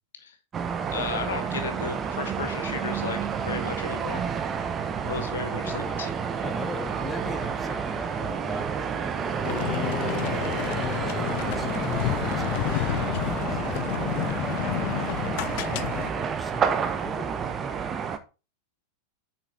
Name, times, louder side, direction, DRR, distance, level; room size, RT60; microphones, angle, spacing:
sound 1, 0.5-18.2, right 7 dB, 25° right, 1.1 m, -30 dB
voice 1, 0.9-4.2 5.0-6.1, left 6 dB, 65° left, 7 dB, 1.7 m, -34 dB
voice 2, 5.6-6.0 6.4-9.8 10.2-12.7 13.3-13.7 14.0-15.2 15.5-15.6 16.0-17.7, left 3 dB, 10° left, 8 dB, 1.0 m, -40 dB
sound 2, 9.4-16.1, left 20 dB, 45° left, 0.3 m, -30 dB
8.4 x 6.1 x 4.4 m, 0.31 s
figure-of-eight pair, 90°, 0 cm